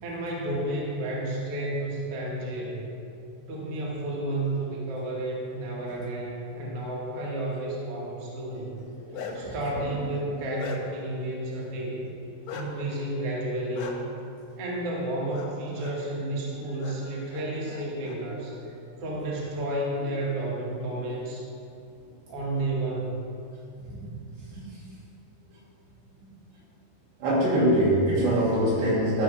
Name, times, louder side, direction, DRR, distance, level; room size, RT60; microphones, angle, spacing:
voice 1, 0.0-2.8 3.5-8.8 9.3-12.1 12.5-14.1 14.6-18.6 19.0-21.5 22.3-23.2, right 1 dB, 60° right, -4 dB, 1.5 m, -31 dB
Bark, 8.8-9.6 10.1-11.1 12.5-12.7 13.7-13.9 15.3-15.5 15.8-15.9 16.8-16.9 17.3-18.2, left 6 dB, 80° left, 2.0 m, -39 dB
voice 2, 9.1-9.6 9.9-10.0 24.5-24.7 27.2-29.2, right 1 dB, 85° right, -9 dB, 4.7 m, -23 dB
13.0 x 4.4 x 4.8 m, 2.5 s
omnidirectional pair, 4.7 m